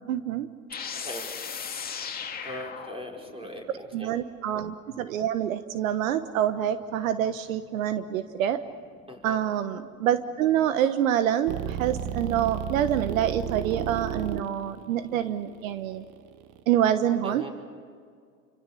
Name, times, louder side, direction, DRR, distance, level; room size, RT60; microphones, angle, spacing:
voice 1, 0.1-0.5 3.9-8.6 9.2-16.0 16.7-17.4, right 10 dB, 75° right, 11 dB, 1.3 m, -26 dB
sound 1, 0.7-4.1 6.8-10.6, left 7 dB, 20° left, 2.4 m, -39 dB
voice 2, 0.9-1.2 1.6-1.9 2.4-4.1 9.1-9.4 17.2-17.5, equal, 15° right, 1 dB, 5.2 m, -40 dB
sound 2, 11.5-16.6, right 9 dB, 45° right, 1.6 m, -33 dB
28.5 x 25.0 x 6.9 m, 2.1 s
hypercardioid pair, 100°, 41 cm